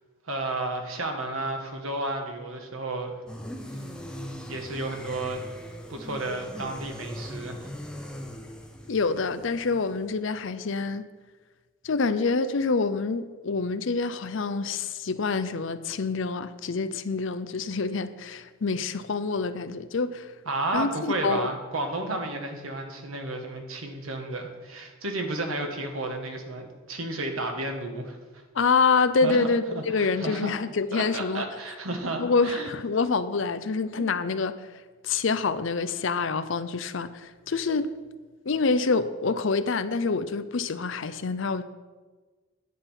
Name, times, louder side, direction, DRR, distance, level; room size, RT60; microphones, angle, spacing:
voice 1, 0.2-3.2 4.5-5.4 5.9-7.7 20.4-28.2 29.2-30.5 30.9-32.7, right 2 dB, 80° right, 1.5 m, -32 dB
sound 1, 3.3-10.1, equal, 5° left, 0.7 m, -40 dB
voice 2, 8.9-11.0 11.8-20.3 20.7-21.5 28.5-31.4 32.2-34.5 35.0-37.9 38.5-41.6, left 4 dB, 65° left, 0.6 m, -26 dB
10.5 x 6.9 x 5.7 m
head